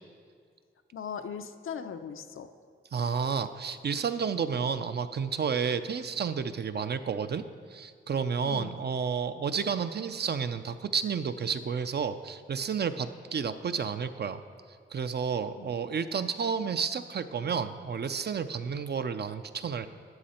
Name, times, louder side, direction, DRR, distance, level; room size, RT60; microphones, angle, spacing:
voice 1, 0.9-2.5 8.4-8.8 15.6-15.8, left 7 dB, 75° left, 8 dB, 0.6 m, -39 dB
voice 2, 2.9-14.4 14.9-19.9, right 6 dB, 55° right, 11 dB, 0.5 m, -31 dB
13.0 x 8.3 x 4.3 m, 2.1 s
wide cardioid pair, 120°, 21 cm